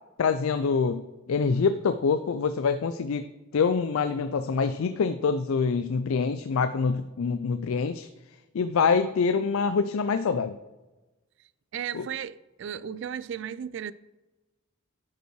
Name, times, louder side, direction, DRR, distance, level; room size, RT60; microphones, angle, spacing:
voice 1, 0.2-3.3 3.5-8.1 8.5-10.6 11.9-12.0, left 5 dB, 85° left, 0.4 m, -25 dB
voice 2, 11.7-13.9, right 8 dB, 60° right, 0.3 m, -35 dB
11.0 x 5.5 x 4.6 m
head